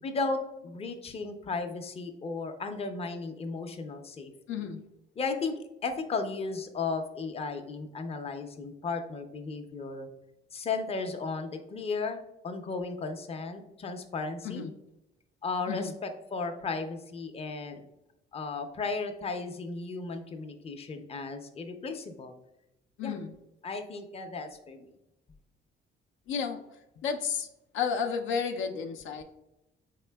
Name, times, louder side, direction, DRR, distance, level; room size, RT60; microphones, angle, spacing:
voice 1, 0.0-4.6 5.2-5.5 5.8-10.1 10.5-14.6 15.4-17.8 18.3-22.3 23.0-23.2 23.6-24.8, left 4 dB, 30° left, 6 dB, 0.5 m, -35 dB
voice 2, 4.5-4.8 14.4-14.7 15.7-15.9 23.0-23.3 26.3-26.6 27.0-27.5 27.7-29.2, left 6 dB, 80° left, 6 dB, 0.5 m, -32 dB
4.0 x 3.6 x 2.2 m, 0.90 s
cardioid pair, 90°, 20 cm